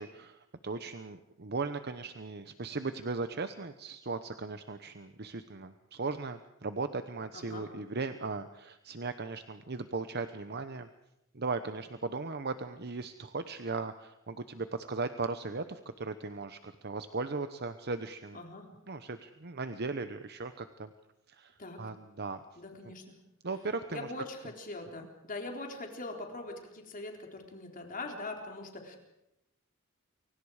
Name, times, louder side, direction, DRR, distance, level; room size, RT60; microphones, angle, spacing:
voice 1, 0.0-10.9 11.3-18.4 18.9-20.9 21.3-22.4 22.8-22.9 23.4-24.1, right 3 dB, 50° right, 10 dB, 1.0 m, -37 dB
voice 2, 7.3-7.7 18.3-18.7 21.6-21.8 22.6-23.0 23.9-29.0, left 2 dB, 40° left, 2 dB, 3.9 m, -42 dB
29.0 x 24.0 x 5.0 m, 0.87 s
head